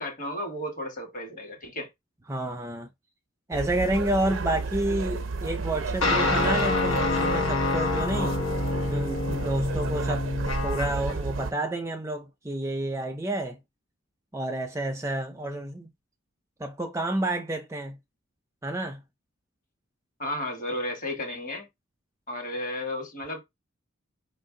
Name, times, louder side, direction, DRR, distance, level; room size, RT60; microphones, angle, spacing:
voice 1, 0.0-1.9 20.2-21.7 22.3-23.4, left 1 dB, 40° left, 1.4 m, -33 dB
voice 2, 2.3-2.9 3.5-8.4 8.9-13.6 14.3-15.9 16.6-18.0 18.6-19.0, right 1 dB, 15° right, 0.4 m, -30 dB
sound 1, 3.5-11.5, right 3 dB, 65° right, 0.6 m, -32 dB
sound 2, 6.0-11.2, left 3 dB, 75° left, 1.1 m, -27 dB
5.1 x 2.5 x 3.7 m
head